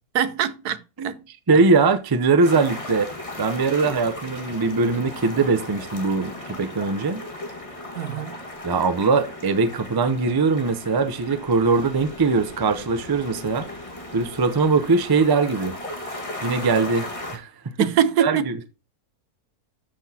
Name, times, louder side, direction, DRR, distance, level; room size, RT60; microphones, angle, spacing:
voice 1, 0.1-1.2 8.0-8.3 17.8-18.5, right 8 dB, 90° right, 1.3 m, -23 dB
voice 2, 1.5-7.2 8.6-13.7 14.1-15.7 16.4-17.1 17.3-17.5 18.2-18.7, right 4 dB, 30° right, 0.4 m, -21 dB
sound 1, 2.4-17.4, left 1 dB, 20° left, 1.7 m, -36 dB
12.5 x 6.0 x 2.8 m
omnidirectional pair, 1.6 m